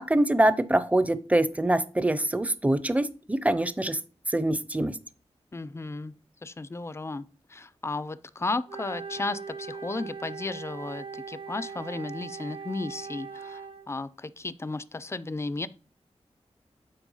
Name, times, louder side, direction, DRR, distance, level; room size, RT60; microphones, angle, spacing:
voice 1, 0.0-4.0 4.3-5.0, right 1 dB, 10° right, 0.7 m, -24 dB
voice 2, 5.5-6.1 6.4-15.7, left 3 dB, 25° left, 0.5 m, -34 dB
Wind instrument woodwind instrument, 8.7-13.9, right 5 dB, 50° right, 1.1 m, -40 dB
9.0 x 4.3 x 5.5 m
wide cardioid pair, 90°, 11 cm